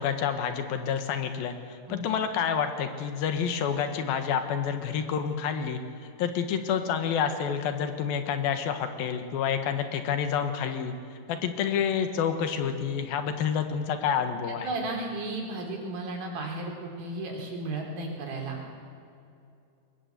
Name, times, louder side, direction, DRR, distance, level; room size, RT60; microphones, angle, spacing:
voice 1, 0.0-5.8 6.2-14.7, left 7 dB, 80° left, 7 dB, 3.3 m, -29 dB
voice 2, 14.6-18.6, right 2 dB, 80° right, 0 dB, 5.5 m, -34 dB
22.0 x 20.0 x 8.2 m, 2.5 s
omnidirectional pair, 4.1 m